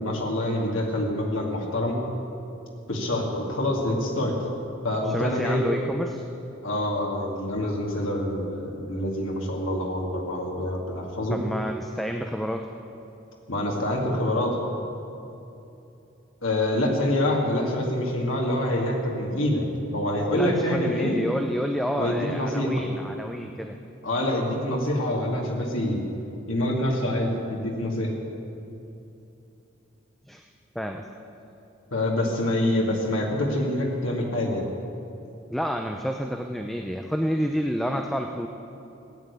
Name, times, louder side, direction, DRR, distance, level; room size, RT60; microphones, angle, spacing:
voice 1, 0.0-2.0 2.9-4.3 4.8-5.7 6.6-11.4 13.5-14.6 16.4-19.7 19.9-21.1 22.0-22.7 24.0-26.0 26.5-28.1 31.9-34.7, left 1 dB, 85° left, -1 dB, 2.5 m, -26 dB
voice 2, 5.0-6.2 11.3-12.7 20.3-23.8 30.3-30.5 30.7-31.0 35.5-38.5, equal, ahead, 3 dB, 0.5 m, -29 dB
16.5 x 8.9 x 8.3 m, 2.8 s
head